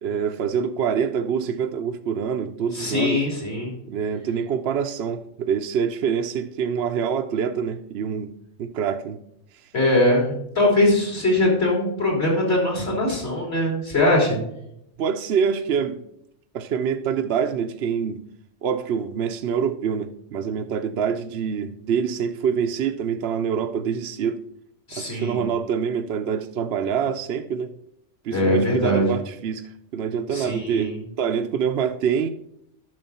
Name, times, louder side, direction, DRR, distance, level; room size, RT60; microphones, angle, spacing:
voice 1, 0.0-3.3 3.9-8.3 8.6-9.2 15.0-16.0 16.5-18.2 18.6-24.4 25.0-27.7 28.2-29.6 29.9-30.9 31.2-32.3, right 7 dB, 65° right, 0.8 m, -25 dB
voice 2, 2.7-3.7 9.7-14.4 24.9-25.5 28.3-29.1 30.3-31.0, left 1 dB, 55° left, 3.9 m, -21 dB
11.0 x 6.4 x 4.2 m
omnidirectional pair, 1.3 m